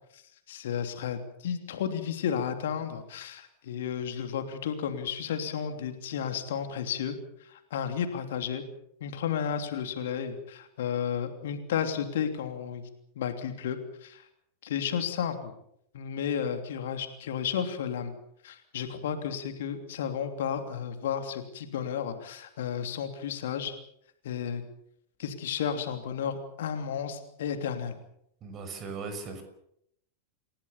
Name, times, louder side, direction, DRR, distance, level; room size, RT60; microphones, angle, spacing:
voice 1, 0.5-8.6 9.0-12.8 13.1-14.2 14.6-15.5 15.9-18.1 18.4-23.7 24.2-24.6 25.2-28.0, left 8 dB, 60° left, 7 dB, 3.1 m, -32 dB
voice 2, 28.4-29.4, right 4 dB, 30° right, 8 dB, 6.1 m, -38 dB
29.5 x 17.0 x 7.2 m, 0.74 s
figure-of-eight pair, 90°, 0 cm